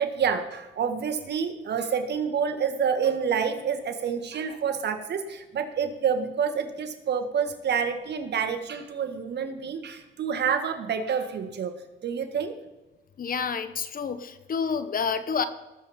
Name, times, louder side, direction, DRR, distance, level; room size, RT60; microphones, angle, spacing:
voice 1, 0.0-11.7 12.0-12.6, right 7 dB, 60° right, 7 dB, 1.7 m, -28 dB
voice 2, 13.2-15.4, left 6 dB, 45° left, 12 dB, 1.0 m, -29 dB
19.0 x 7.3 x 4.3 m, 1.1 s
cardioid pair, 90°, 20 cm